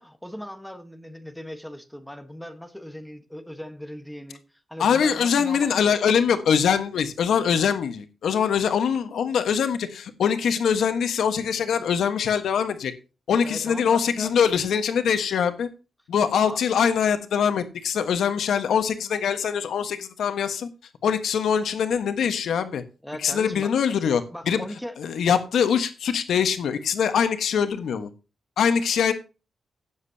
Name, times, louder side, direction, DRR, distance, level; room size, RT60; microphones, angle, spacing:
voice 1, 0.0-4.4 4.7-5.9 13.4-14.4 16.5-16.6 23.0-23.7 24.3-25.0, equal, ahead, 1.3 m, -39 dB
voice 2, 4.8-12.9 13.3-15.7 16.1-20.7 21.0-22.8 23.2-24.6 25.0-28.1 28.6-29.1, left 7 dB, 85° left, 1.4 m, -23 dB
16.5 x 7.5 x 2.8 m
wide cardioid pair, 160°, 0 cm